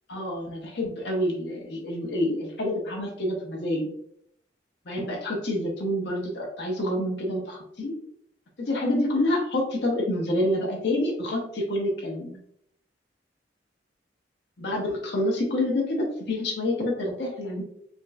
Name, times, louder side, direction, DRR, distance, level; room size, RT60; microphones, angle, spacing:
voice 1, 0.1-3.9 4.9-7.9 8.6-12.4 14.6-17.6, left 1 dB, 65° left, -1 dB, 0.8 m, -27 dB
5.1 x 2.0 x 2.3 m, 0.72 s
head